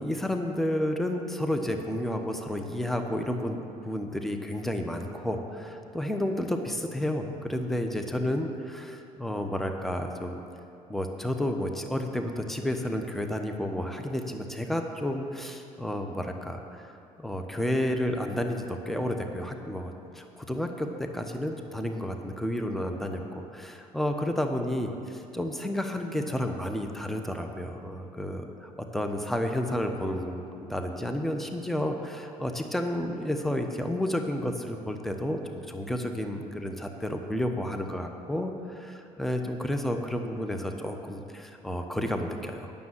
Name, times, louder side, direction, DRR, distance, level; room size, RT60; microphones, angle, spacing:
voice 1, 0.0-3.6 3.8-10.4 10.9-16.9 17.2-42.7, left 1 dB, ahead, 4 dB, 1.0 m, -31 dB
9.5 x 6.9 x 7.8 m, 2.8 s
hypercardioid pair, 65°, 18 cm